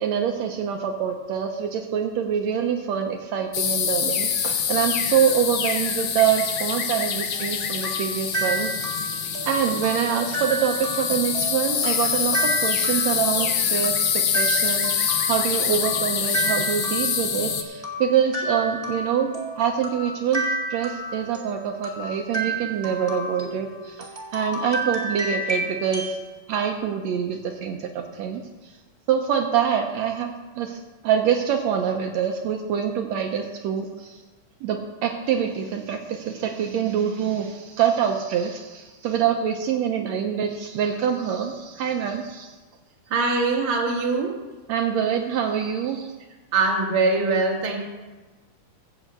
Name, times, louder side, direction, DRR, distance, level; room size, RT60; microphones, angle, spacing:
voice 1, 0.0-9.0 9.5-26.2 26.5-28.4 29.1-34.2 34.6-42.5 44.7-46.1, right 8 dB, 80° right, 4 dB, 1.6 m, -25 dB
sound 1, 3.5-17.6, left 7 dB, 85° left, 1.2 m, -25 dB
sound 2, 7.3-26.2, right 1 dB, 15° right, 1.3 m, -32 dB
voice 2, 43.1-44.4 46.5-47.8, right 3 dB, 50° right, -1 dB, 2.1 m, -22 dB
14.5 x 4.9 x 7.9 m, 1.2 s
omnidirectional pair, 3.8 m